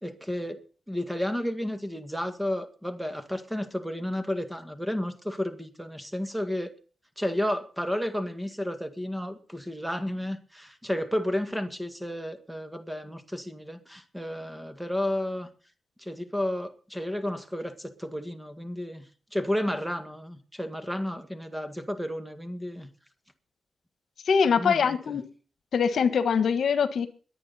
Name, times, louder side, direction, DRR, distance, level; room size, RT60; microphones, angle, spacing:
voice 1, 0.0-0.6 0.9-6.7 7.2-15.5 16.0-19.0 19.3-22.9 24.6-25.2, left 1 dB, 5° right, 9 dB, 2.0 m, -32 dB
voice 2, 24.3-25.2 25.7-27.1, left 6 dB, 75° left, 11 dB, 1.3 m, -23 dB
22.0 x 8.8 x 4.2 m, 0.39 s
cardioid pair, 95°, 0 cm